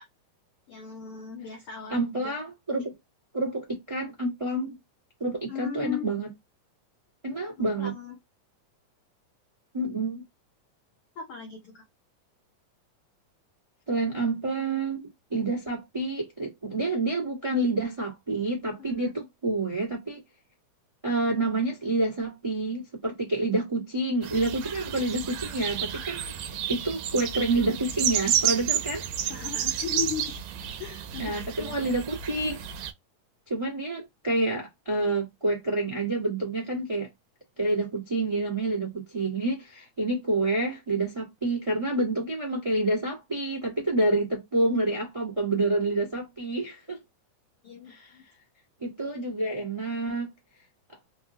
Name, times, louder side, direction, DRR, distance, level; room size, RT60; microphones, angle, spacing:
voice 1, 0.7-2.3 5.5-6.1 7.8-8.2 11.2-11.8 18.8-19.1 29.3-30.3 30.8-31.9 47.6-48.2, left 7 dB, 80° left, 1.2 m, -38 dB
voice 2, 1.9-2.9 3.3-4.8 5.2-6.3 7.2-7.9 9.7-10.2 13.9-20.2 21.0-26.4 26.7-29.1 31.2-32.6 33.5-37.1 37.6-47.0 47.9-48.1 48.8-50.3, right 2 dB, 25° right, 0.6 m, -28 dB
sound 1, 24.2-32.9, right 10 dB, 75° right, 2.0 m, -31 dB
5.1 x 2.2 x 2.7 m
omnidirectional pair, 3.7 m